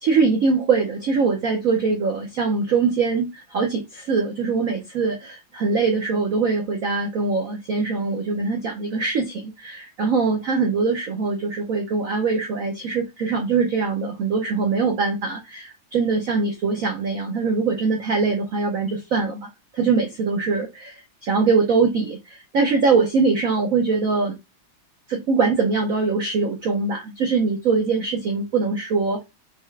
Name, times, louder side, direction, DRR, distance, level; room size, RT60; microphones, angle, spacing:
voice 1, 0.0-19.5 19.7-24.4 25.1-29.2, right 4 dB, 65° right, 0.8 m, -22 dB
5.8 x 2.1 x 3.2 m
omnidirectional pair, 2.2 m